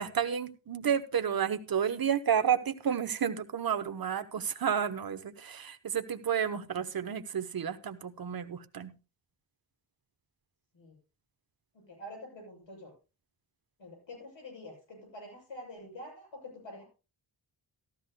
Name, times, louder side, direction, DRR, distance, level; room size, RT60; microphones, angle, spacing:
voice 1, 0.0-8.9, right 8 dB, 50° right, 10 dB, 1.0 m, -31 dB
voice 2, 11.9-12.9 13.8-16.8, left 1 dB, 70° left, -1 dB, 7.4 m, -46 dB
15.0 x 13.0 x 2.2 m, 0.30 s
wide cardioid pair, 125°, 46 cm